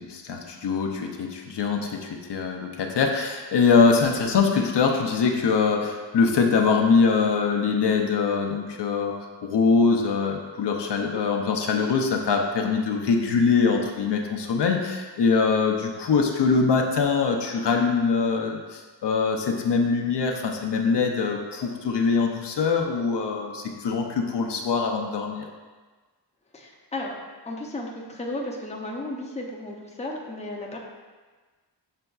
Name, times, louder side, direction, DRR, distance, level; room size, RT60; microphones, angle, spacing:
voice 1, 0.0-9.1 9.4-25.5, left 5 dB, 75° left, 2 dB, 0.6 m, -23 dB
voice 2, 26.5-27.2 27.4-30.8, left 1 dB, 15° left, -1 dB, 0.6 m, -34 dB
6.6 x 3.4 x 2.3 m, 1.4 s
wide cardioid pair, 90°, 42 cm